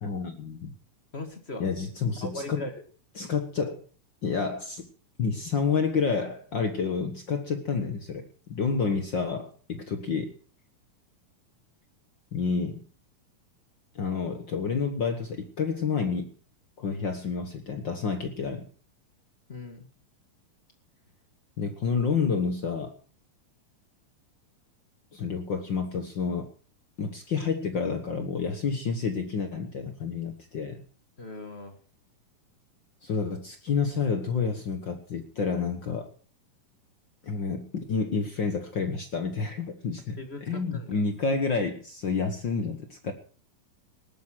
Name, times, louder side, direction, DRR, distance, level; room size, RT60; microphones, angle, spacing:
voice 1, 0.0-0.7 1.6-2.6 3.2-3.8 4.2-4.9 5.2-10.3 12.3-12.8 13.9-16.3 16.8-18.6 21.6-22.9 25.1-26.5 27.0-30.8 33.0-36.1 37.2-43.1, left 5 dB, 55° left, 7 dB, 1.3 m, -29 dB
voice 2, 1.1-1.6 2.2-2.7 16.9-17.0 19.5-19.9 31.2-31.8 40.2-41.0, left 2 dB, 35° left, 6 dB, 0.9 m, -39 dB
19.0 x 9.3 x 6.3 m, 0.41 s
omnidirectional pair, 3.9 m